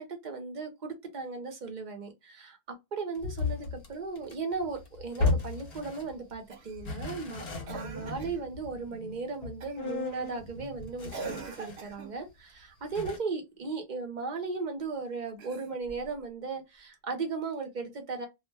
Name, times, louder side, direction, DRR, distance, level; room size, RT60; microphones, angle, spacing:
voice 1, 0.0-2.6 2.9-18.3, right 4 dB, 50° right, 0.8 m, -36 dB
sound 1, 3.1-6.3 6.7-11.9 12.3-12.4 12.9-13.2, left 3 dB, 75° left, 1.1 m, -35 dB
Cough, 6.5-6.9 7.7-8.4 9.6-9.9 11.1-12.2 15.3-16.1 17.5-17.6, right 4 dB, 85° right, 1.0 m, -42 dB
2.4 x 2.1 x 3.2 m
omnidirectional pair, 1.0 m